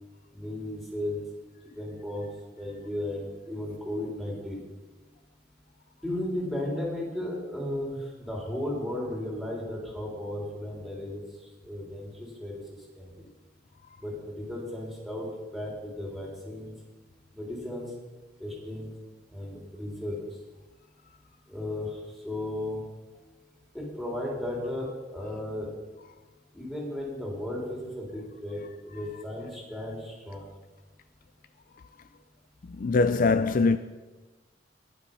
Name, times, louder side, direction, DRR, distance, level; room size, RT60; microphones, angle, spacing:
voice 1, 0.3-1.2 1.8-2.3 2.6-4.6 6.0-11.2 11.6-12.6 13.0-13.3 14.0-15.3 15.5-16.7 17.3-17.9 18.4-18.9 19.3-20.2 21.5-22.0 22.2-22.8 23.7-25.7 26.5-30.5, left 1 dB, ahead, 3.9 m, -35 dB
voice 2, 32.6-33.8, left 4 dB, 50° left, 0.4 m, -24 dB
21.0 x 7.2 x 5.5 m
head